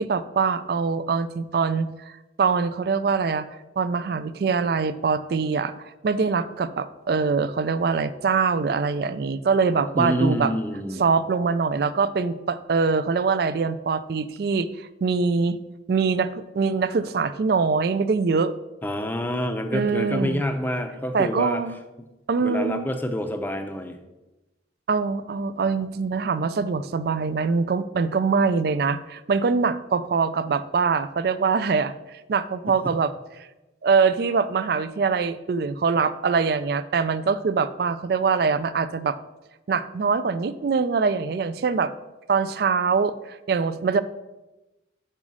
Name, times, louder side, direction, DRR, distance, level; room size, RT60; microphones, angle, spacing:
voice 1, 0.0-3.4 3.8-5.7 6.0-10.5 11.0-15.6 15.9-18.5 19.7-20.4 21.1-21.8 22.3-22.9 24.9-33.1 33.8-39.2 39.7-41.9 42.3-44.0, right 5 dB, 55° right, 14 dB, 0.3 m, -23 dB
voice 2, 10.0-11.0 18.8-21.6 22.0-22.1 22.4-24.0, equal, 10° left, 6 dB, 0.5 m, -27 dB
5.5 x 4.9 x 6.2 m, 1.0 s
head